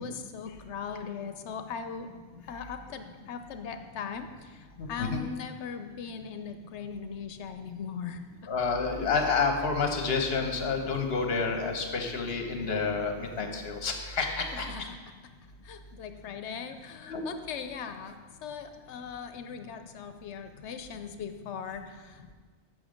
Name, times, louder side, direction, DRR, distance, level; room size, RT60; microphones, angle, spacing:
voice 1, 0.0-2.1 2.4-8.2 14.5-15.0 15.6-22.3, left 6 dB, 80° left, 8 dB, 0.9 m, -39 dB
voice 2, 4.8-5.2 8.5-14.7 17.0-17.2, left 4 dB, 60° left, 4 dB, 1.2 m, -29 dB
8.0 x 6.3 x 5.1 m, 1.5 s
omnidirectional pair, 1.2 m